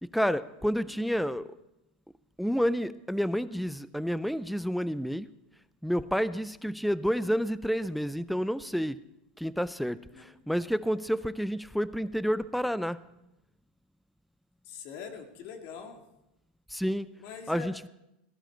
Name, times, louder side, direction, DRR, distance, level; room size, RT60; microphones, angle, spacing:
voice 1, 0.0-1.5 2.4-5.3 5.8-9.0 9.4-13.0 16.7-17.1 17.5-17.9, equal, ahead, 17 dB, 0.3 m, -29 dB
voice 2, 10.1-10.4 14.6-16.0 17.2-17.7, left 6 dB, 55° left, 5 dB, 2.0 m, -43 dB
16.0 x 11.5 x 4.4 m, 0.88 s
supercardioid pair, 130°, 5 cm